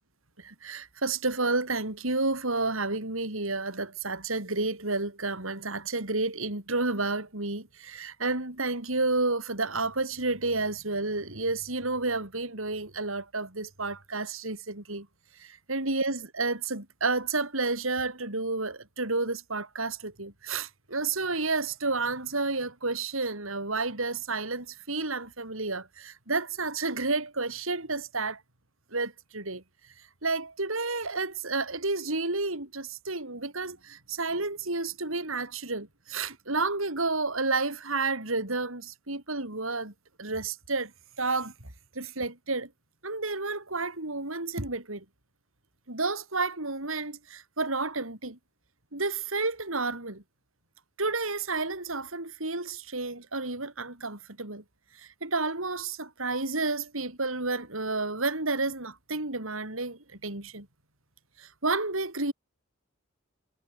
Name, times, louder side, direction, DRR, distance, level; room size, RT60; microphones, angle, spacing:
voice 1, 0.4-15.1 15.4-28.4 28.9-29.6 30.2-39.9 40.2-40.9 41.2-41.5 42.0-42.7 43.0-45.0 45.9-48.4 48.9-50.2 51.0-54.6 55.2-60.7 61.4-62.3, right 3 dB, 75° right, 5.4 m, -31 dB
head